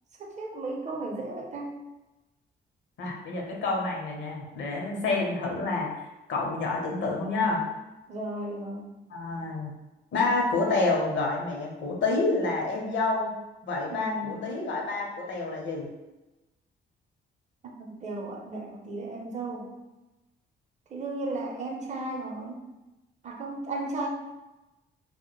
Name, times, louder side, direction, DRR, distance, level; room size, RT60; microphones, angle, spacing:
voice 1, 0.2-1.7 8.1-8.9 13.9-14.5 17.6-19.7 20.9-22.6 23.2-24.1, right 2 dB, 35° right, 0 dB, 0.6 m, -35 dB
voice 2, 3.0-5.9 6.3-7.6 9.1-9.7 10.1-13.3 13.6-15.9, left 3 dB, 70° left, -1 dB, 0.7 m, -28 dB
2.1 x 2.1 x 3.0 m, 1.0 s
cardioid pair, 90°, 20 cm